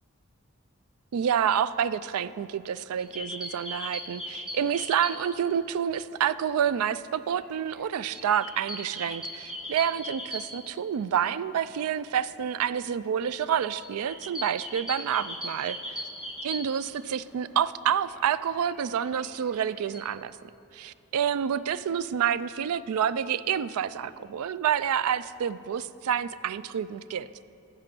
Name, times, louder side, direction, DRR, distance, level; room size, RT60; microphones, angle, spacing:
voice 1, 1.1-16.0 16.4-20.4 20.7-27.3, right 8 dB, 90° right, 16 dB, 0.3 m, -28 dB
sound 1, 3.0-5.5 5.7-5.8 6.1-11.0 11.3-11.4 11.6-11.9 12.4-17.4 17.8-20.1, equal, 5° right, 0.9 m, -39 dB
14.5 x 6.8 x 6.0 m, 2.8 s
head